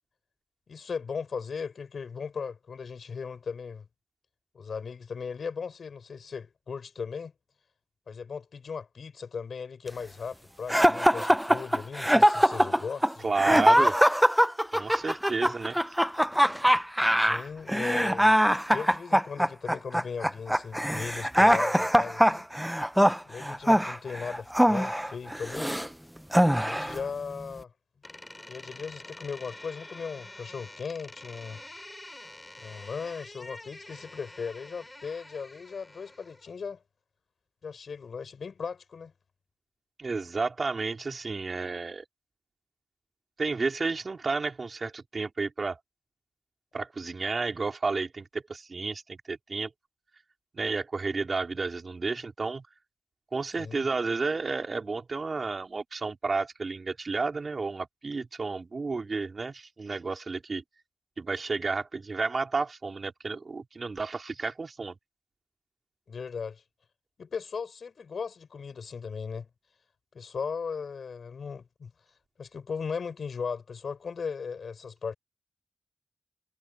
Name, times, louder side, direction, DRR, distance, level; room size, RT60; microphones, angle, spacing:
voice 1, 0.7-3.9 4.5-7.3 8.1-13.9 15.4-15.5 17.2-18.4 18.7-22.5 23.3-25.7 26.5-27.7 28.5-31.6 32.6-36.8 37.6-39.1 53.6-53.8 66.1-66.6 67.2-69.5 70.1-71.9 72.4-75.1, left 5 dB, 80° left, 6.2 m, -37 dB
sound 1, 10.7-25.9 26.3-27.0, equal, 5° right, 0.5 m, -23 dB
voice 2, 13.2-14.0 14.7-15.8 40.0-42.0 43.4-45.8 46.7-49.7 50.5-52.7 53.3-60.6 61.2-65.0, right 4 dB, 60° right, 3.7 m, -31 dB
Door, 28.0-36.5, left 1 dB, 25° left, 4.9 m, -47 dB
cardioid pair, 40°, 0 cm